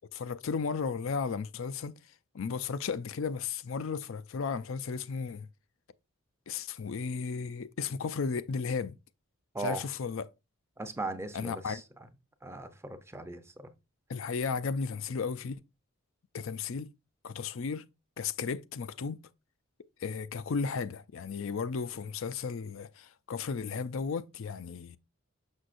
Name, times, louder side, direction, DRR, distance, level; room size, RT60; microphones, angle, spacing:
voice 1, 0.1-2.0 2.3-5.5 6.5-9.0 9.6-10.2 11.3-11.8 14.1-15.6 16.3-16.9 17.2-17.9 18.2-19.2 20.0-25.0, left 5 dB, 65° left, 0.5 m, -34 dB
voice 2, 10.8-11.8 12.4-13.7, right 2 dB, 10° right, 0.6 m, -38 dB
6.3 x 6.2 x 2.5 m
head